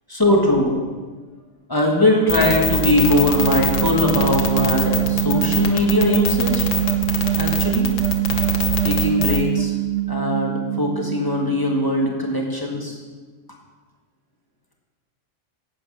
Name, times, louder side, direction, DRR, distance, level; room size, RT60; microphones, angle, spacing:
voice 1, 0.1-0.7 1.7-6.7 7.4-7.9 8.8-9.7 10.1-13.0, left 1 dB, 15° left, -1 dB, 1.6 m, -20 dB
sound 1, 1.9-12.0, right 17 dB, 65° right, 1.2 m, -24 dB
sound 2, 2.3-9.4, left 4 dB, 70° left, 1.5 m, -24 dB
11.0 x 8.4 x 5.5 m, 1.4 s
omnidirectional pair, 1.4 m